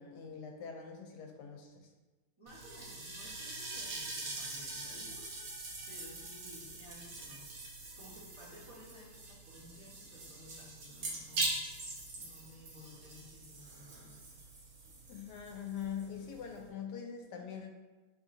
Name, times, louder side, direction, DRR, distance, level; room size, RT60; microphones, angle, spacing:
voice 1, 0.0-1.9 15.1-17.7, left 7 dB, 90° left, 3 dB, 1.2 m, -43 dB
voice 2, 2.4-5.5 5.9-7.6 8.0-11.6 12.1-14.4, left 1 dB, 25° right, -9 dB, 0.9 m, -55 dB
sound 1, 2.5-16.7, right 2 dB, 65° right, 1.3 m, -43 dB
3.7 x 3.0 x 3.8 m, 1.2 s
omnidirectional pair, 1.8 m